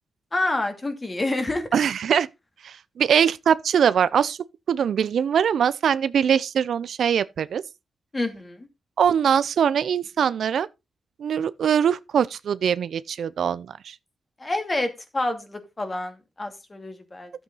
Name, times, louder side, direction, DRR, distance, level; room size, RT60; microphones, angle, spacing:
voice 1, 0.3-1.7 8.1-8.7 14.4-17.3, left 2 dB, 25° left, 2.6 m, -28 dB
voice 2, 1.7-2.3 2.6-4.4 4.7-7.6 9.0-10.7 11.2-13.9, right 8 dB, 75° right, 0.6 m, -22 dB
12.0 x 7.9 x 4.0 m
cardioid pair, 80°, 0 cm